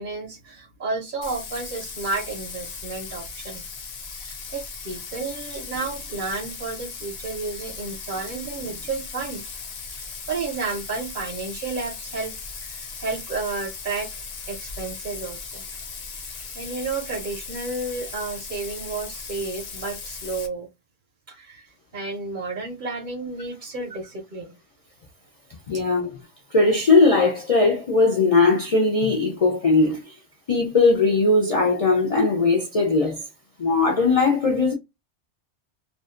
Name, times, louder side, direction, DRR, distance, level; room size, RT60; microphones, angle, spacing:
voice 1, 0.0-3.7 4.1-9.5 10.3-14.2 14.5-15.6 16.3-20.7 21.3-21.7 21.9-24.6, right 3 dB, 50° right, 0.8 m, -32 dB
Bathtub (filling or washing), 1.2-20.5, left 5 dB, 65° left, 0.9 m, -37 dB
voice 2, 25.7-26.2 26.5-30.1 30.5-33.2 33.6-34.7, left 3 dB, 50° left, 0.4 m, -19 dB
2.6 x 2.1 x 2.4 m
omnidirectional pair, 1.2 m